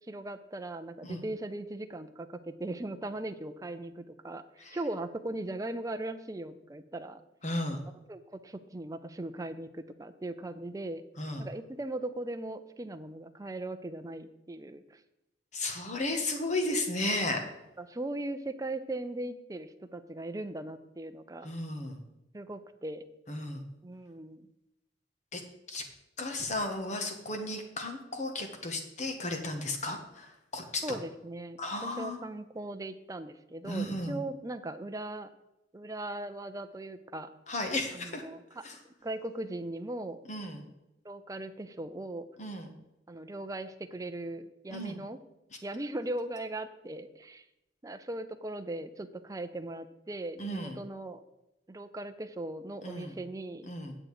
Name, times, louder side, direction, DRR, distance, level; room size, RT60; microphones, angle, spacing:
voice 1, 0.1-4.4 4.7-7.2 8.1-11.0 11.4-15.0 17.8-21.5 22.3-23.0 23.8-24.5 30.8-35.3 35.7-37.3 37.9-38.6 39.0-40.2 41.0-42.3 43.1-45.2 45.6-47.4 47.8-51.2 51.7-53.7, right 2 dB, 20° right, 8 dB, 0.6 m, -39 dB
voice 2, 7.4-7.8 11.2-11.5 15.5-17.4 21.4-22.0 23.3-23.6 25.3-25.4 25.7-25.8 26.2-30.8 31.6-32.2 33.6-34.2 37.5-38.2 38.6-38.8 40.3-40.6 42.4-42.7 44.7-45.0 50.4-50.8 52.8-53.2 53.7-54.0, left 1 dB, 40° left, 4 dB, 1.5 m, -34 dB
9.0 x 7.6 x 4.9 m, 0.91 s
head